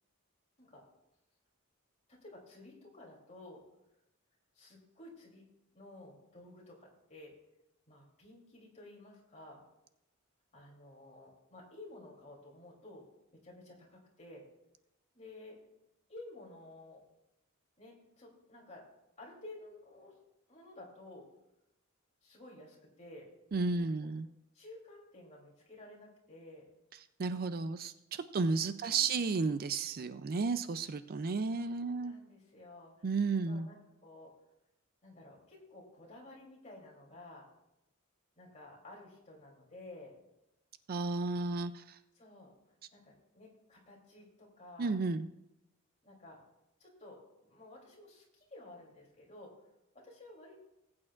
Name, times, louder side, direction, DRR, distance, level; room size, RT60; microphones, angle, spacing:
voice 1, 2.1-3.6 4.5-5.4 5.7-7.3 7.9-9.6 10.5-13.1 13.4-14.5 15.1-15.6 16.1-17.0 17.8-18.8 19.2-20.2 20.5-21.3 22.2-23.3 23.7-24.1 24.5-26.7 28.8-29.2 31.4-33.1 33.4-34.3 35.0-37.5 38.4-40.2 42.1-42.5 42.9-45.0 46.0-46.4 46.8-49.5 49.9-50.6, left 2 dB, 35° left, -2 dB, 3.1 m, -53 dB
voice 2, 23.5-24.3 27.2-32.1 33.0-33.7 40.9-42.0 44.8-45.3, right 4 dB, 45° right, 11 dB, 0.4 m, -33 dB
19.5 x 8.7 x 2.5 m, 0.90 s
head